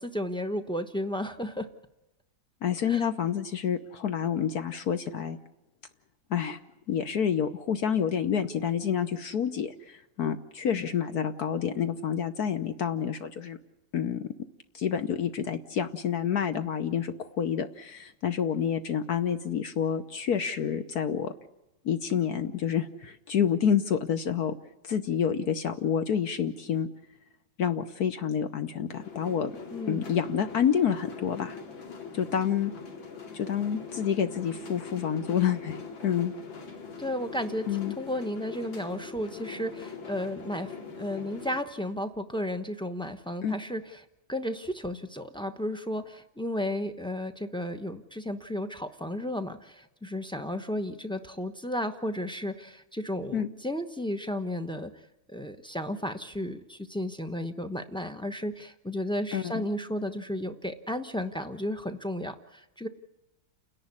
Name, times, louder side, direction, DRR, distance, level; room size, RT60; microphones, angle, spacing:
voice 1, 0.0-1.7 2.8-3.0 29.7-30.1 37.0-37.7 38.0-54.9 55.3-62.9, left 1 dB, 5° left, 9 dB, 0.4 m, -33 dB
voice 2, 2.6-5.4 6.3-6.6 6.9-13.6 13.9-14.2 14.7-21.3 21.8-24.5 24.8-26.9 27.6-29.5 29.9-31.6 32.1-32.7 33.3-36.3 37.7-38.0 43.4-43.6 53.3-53.5 59.3-59.6, left 8 dB, 60° left, 9 dB, 1.4 m, -28 dB
sound 1, 28.9-41.6, left 5 dB, 80° left, 3.2 m, -42 dB
30.0 x 11.0 x 9.7 m, 0.98 s
omnidirectional pair, 2.1 m